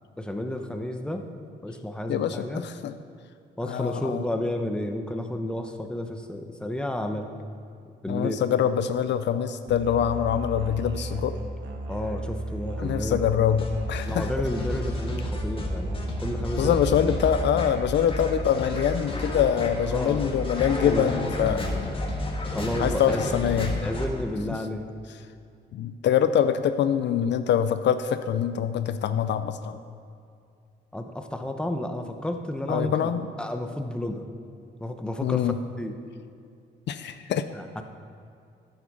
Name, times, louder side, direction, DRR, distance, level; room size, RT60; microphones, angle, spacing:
voice 1, 0.2-1.2 1.6-2.6 3.6-7.5 8.0-8.4 11.9-13.2 14.0-16.8 19.8-20.4 20.8-21.1 21.4-21.9 22.5-23.6 23.8-24.9 30.9-33.1 33.4-34.3 34.8-35.9 37.5-37.8, left 1 dB, 5° left, 5 dB, 0.8 m, -31 dB
voice 2, 2.1-2.9 3.6-4.2 8.1-11.4 12.8-14.3 16.6-21.6 22.8-23.8 24.5-24.6 25.7-29.8 32.7-33.2 35.2-35.6 36.9-37.5, left 9 dB, 65° left, 11 dB, 0.5 m, -24 dB
Musical instrument, 9.7-17.6, right 1 dB, 65° right, 1.4 m, -34 dB
sound 1, 13.6-24.1, left 2 dB, 25° left, 1.7 m, -32 dB
10.5 x 7.7 x 5.4 m, 2.4 s
cardioid pair, 90°, 20 cm